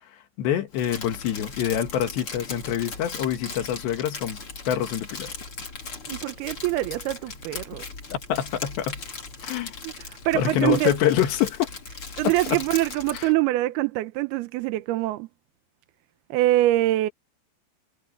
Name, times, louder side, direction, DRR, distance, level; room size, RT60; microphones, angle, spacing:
voice 1, 0.4-4.4 4.7-5.3 8.1-9.0 9.4-9.7 10.3-11.7 12.5-12.6 13.1-13.3, left 10 dB, 75° left, 4.0 m, -26 dB
Crumpling crinkling, 0.7-13.3, left 4 dB, 30° left, 4.0 m, -38 dB
voice 2, 6.1-7.8 9.8-11.0 12.2-15.3 16.3-17.1, right 16 dB, 75° right, 2.5 m, -24 dB
omnidirectional pair, 5.0 m